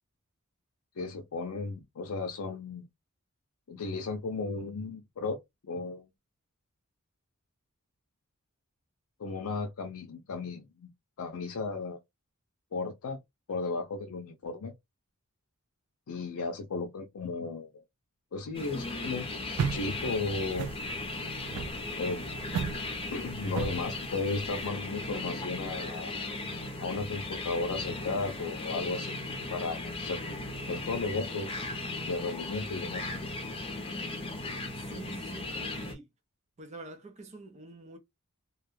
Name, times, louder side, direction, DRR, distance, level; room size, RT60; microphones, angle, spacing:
voice 1, 1.0-2.9 3.7-5.4 5.6-6.1 9.2-10.9 11.2-12.0 12.7-13.2 13.5-14.7 16.1-17.8 18.3-19.3 19.7-20.7 22.0-22.2 23.1-26.1 26.8-29.2 29.5-30.2 30.7-31.5 32.1-33.2, left 3 dB, 70° left, 0.5 m, -34 dB
sound 1, 18.5-35.9, left 2 dB, 25° left, 0.6 m, -37 dB
sound 2, 19.5-24.7, right 6 dB, 85° right, 0.4 m, -36 dB
voice 2, 34.8-36.1 36.6-38.0, right 2 dB, 30° right, 0.5 m, -46 dB
2.3 x 2.2 x 3.1 m
head